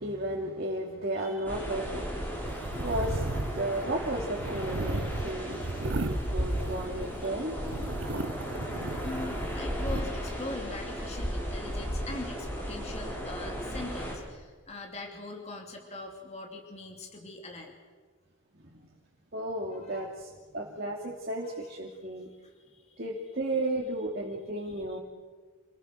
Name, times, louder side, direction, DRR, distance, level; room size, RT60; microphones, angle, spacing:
voice 1, 0.0-2.5 2.8-3.2 3.5-5.0 5.2-7.6 8.9-9.0 19.3-22.3 23.0-25.0, right 1 dB, 55° right, -2 dB, 2.7 m, -34 dB
voice 2, 1.2-1.7 4.9-5.0 7.2-7.3 9.0-17.7 19.7-20.1 21.4-22.1 22.4-23.1 24.7-25.0, left 2 dB, 35° left, 1 dB, 2.9 m, -42 dB
sound 1, 1.4-14.1, equal, 10° left, 6.2 m, -35 dB
sound 2, 2.5-7.3 7.6-10.0, right 2 dB, 70° right, 1.0 m, -35 dB
28.0 x 19.5 x 6.5 m, 1.5 s
head